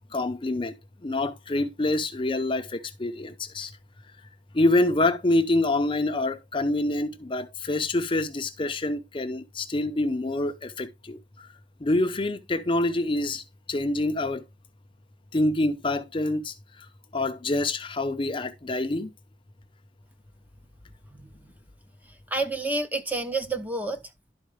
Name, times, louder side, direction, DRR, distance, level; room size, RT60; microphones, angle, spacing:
voice 1, 0.1-0.8 1.0-3.7 4.5-11.5 11.8-14.4 15.3-16.9 17.1-19.1, left 2 dB, 30° left, 0.6 m, -26 dB
voice 2, 21.1-21.5 22.3-24.1, right 2 dB, 10° right, 0.7 m, -29 dB
11.5 x 4.4 x 3.2 m
head